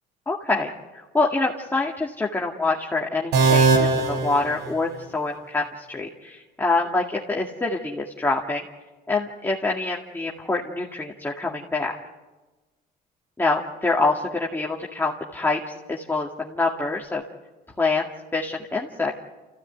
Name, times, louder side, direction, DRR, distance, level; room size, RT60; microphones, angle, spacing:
voice 1, 0.3-8.6 9.1-11.9 13.4-15.6 15.9-17.2 17.8-18.0 18.3-19.1, left 3 dB, 10° left, -2 dB, 2.2 m, -25 dB
sound 1, 3.3-5.2, right 4 dB, 80° right, 5.0 m, -21 dB
29.0 x 16.0 x 9.3 m, 1.2 s
cardioid pair, 110°, 17 cm